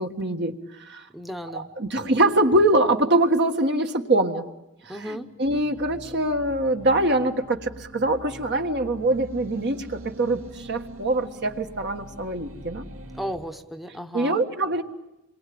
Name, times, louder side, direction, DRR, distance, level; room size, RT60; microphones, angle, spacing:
voice 1, 0.0-1.1 1.5-4.5 4.8-12.8 14.1-14.8, right 1 dB, 50° right, 4 dB, 1.7 m, -24 dB
voice 2, 1.1-1.7 4.9-5.3 13.1-14.4, equal, ahead, 8 dB, 1.0 m, -34 dB
sound 1, 5.5-13.4, right 1 dB, 65° right, 2.8 m, -43 dB
28.0 x 22.5 x 8.7 m, 0.90 s
head